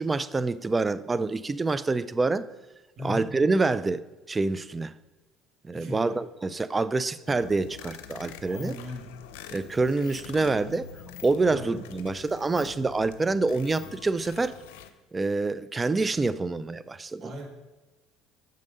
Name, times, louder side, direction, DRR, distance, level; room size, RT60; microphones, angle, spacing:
voice 1, 0.0-2.4 3.0-4.0 4.3-4.9 5.6-8.8 9.5-10.9 11.2-14.6 15.1-17.3, right 3 dB, 20° right, 16 dB, 0.4 m, -26 dB
voice 2, 3.0-3.3 5.7-6.2 8.5-9.1 11.5-11.8 17.2-17.5, left 1 dB, 55° right, 0 dB, 2.4 m, -37 dB
sound 1, 7.3-14.9, left 8 dB, 85° left, 0.6 m, -45 dB
7.5 x 5.4 x 5.2 m, 1.1 s
supercardioid pair, 85°, 0 cm